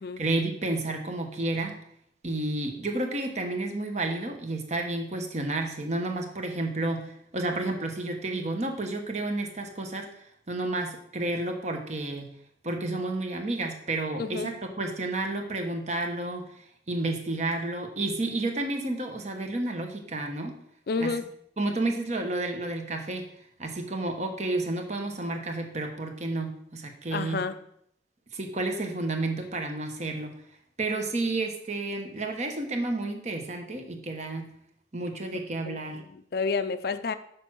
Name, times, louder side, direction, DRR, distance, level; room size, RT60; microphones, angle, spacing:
voice 1, 0.2-1.8 2.2-12.3 12.6-20.5 21.0-21.1 21.6-23.2 23.6-27.4 28.3-30.3 30.8-34.5 34.9-36.0, right 2 dB, 40° right, 4 dB, 1.1 m, -31 dB
voice 2, 14.2-14.5 20.9-21.3 27.1-27.6 35.7-37.1, left 4 dB, 55° left, 12 dB, 0.4 m, -30 dB
6.8 x 4.7 x 6.2 m, 0.71 s
head